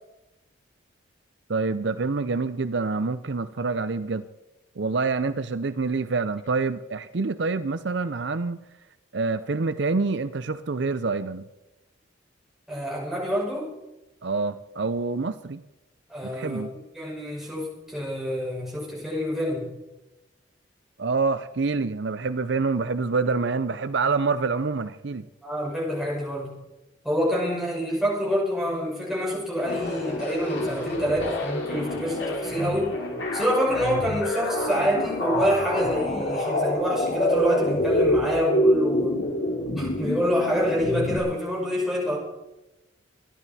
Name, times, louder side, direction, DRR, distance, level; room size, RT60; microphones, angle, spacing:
voice 1, 1.5-4.2 4.8-8.6 9.1-11.5 14.2-15.6 16.2-16.7 21.0-25.3, right 4 dB, 60° right, 12 dB, 0.6 m, -26 dB
voice 2, 12.7-13.7 16.1-16.6 16.9-19.7 25.4-26.5 27.0-32.9 33.3-39.2 39.8-42.2, equal, ahead, -5 dB, 5.5 m, -27 dB
sound 1, 29.6-41.2, left 1 dB, 65° left, 4.6 m, -26 dB
27.0 x 11.0 x 4.3 m, 0.99 s
head